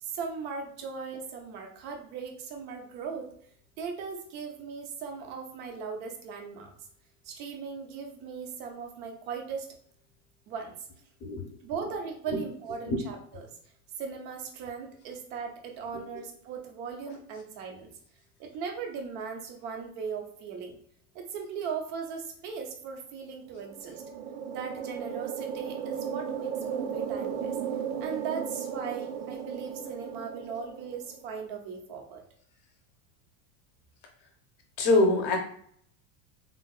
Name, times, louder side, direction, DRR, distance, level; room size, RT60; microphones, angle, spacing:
voice 1, 0.0-3.3 3.8-6.7 7.2-9.7 10.5-10.8 11.6-13.5 14.0-17.9 18.4-20.8 21.1-24.0 24.5-27.6 28.0-32.2, right 6 dB, 30° right, 2 dB, 0.4 m, -38 dB
sound 1, 23.5-31.2, right 7 dB, 90° right, 0.5 m, -35 dB
voice 2, 34.8-35.4, left 2 dB, 40° left, 2 dB, 0.7 m, -23 dB
3.6 x 2.2 x 2.3 m, 0.62 s
cardioid pair, 170°, 38 cm